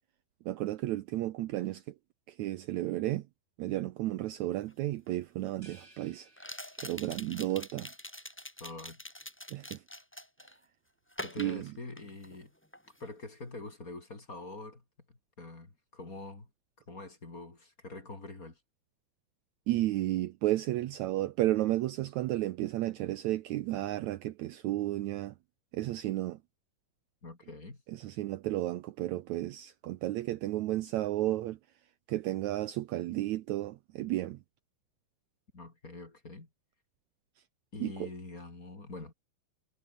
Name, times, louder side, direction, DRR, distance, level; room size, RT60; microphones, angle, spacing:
voice 1, 0.4-1.8 2.3-3.3 3.6-6.3 6.8-7.9 9.5-9.8 11.4-11.7 19.7-25.3 25.7-26.4 27.9-31.6 32.1-34.4 37.8-38.1, right 15 dB, 90° right, 1.6 m, -33 dB
sound 1, 4.7-4.8 6.4-10.6 11.1-12.4 12.7-13.1, equal, 5° left, 3.4 m, -45 dB
sound 2, 5.6-7.3, right 2 dB, 25° right, 8.1 m, -59 dB
voice 2, 8.6-9.0 11.2-12.5 13.0-16.5 16.9-18.6 27.2-27.8 35.5-36.5 37.7-39.1, left 2 dB, 25° left, 3.7 m, -45 dB
omnidirectional pair, 4.3 m